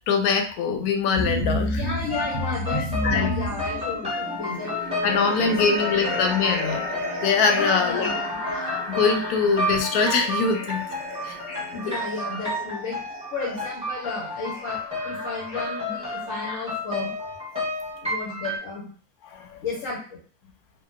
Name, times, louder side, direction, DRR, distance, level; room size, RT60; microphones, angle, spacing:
voice 1, 0.1-1.8 3.0-3.3 5.0-6.8 7.2-8.1 8.9-10.8 11.2-11.4 11.7-11.9 19.3-19.6, left 5 dB, 85° left, 4 dB, 1.1 m, -23 dB
sound 1, 1.1-17.3 17.5-17.6, left 1 dB, 40° left, 1.6 m, -33 dB
voice 2, 1.7-4.7 5.0-6.0 7.5-8.4 11.7-13.0 13.3-17.1 17.9-18.9 19.6-20.2, left 3 dB, 60° left, -6 dB, 1.3 m, -33 dB
sound 2, 2.1-18.6, left 1 dB, 5° right, 0.8 m, -31 dB
sound 3, 4.2-13.2, right 2 dB, 70° right, 0.4 m, -37 dB
3.5 x 2.1 x 2.5 m, 0.42 s
omnidirectional pair, 1.6 m